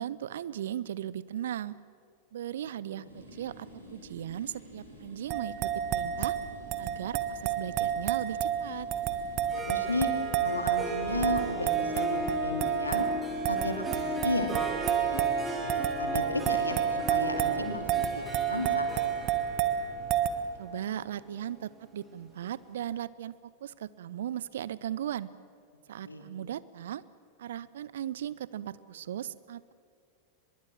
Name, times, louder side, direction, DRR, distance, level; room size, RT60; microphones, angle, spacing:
voice 1, 0.0-1.8 2.3-6.4 6.8-8.9 20.6-23.3 23.6-25.3 25.9-27.0 27.4-29.7, right 11 dB, 60° right, 19 dB, 0.7 m, -37 dB
sound 1, 3.0-12.7, equal, 85° right, 6.4 m, -51 dB
sound 2, 5.3-20.3, right 9 dB, 40° right, 1.4 m, -30 dB
Harp, 9.4-22.3, right 2 dB, 15° right, 4.0 m, -37 dB
voice 2, 9.6-10.1 10.4-13.1 13.5-14.7 15.1-15.2 16.0-19.4 26.0-26.2, left 2 dB, 80° left, 5 dB, 2.6 m, -34 dB
24.0 x 21.5 x 7.6 m, 2.2 s
figure-of-eight pair, 90°, 0 cm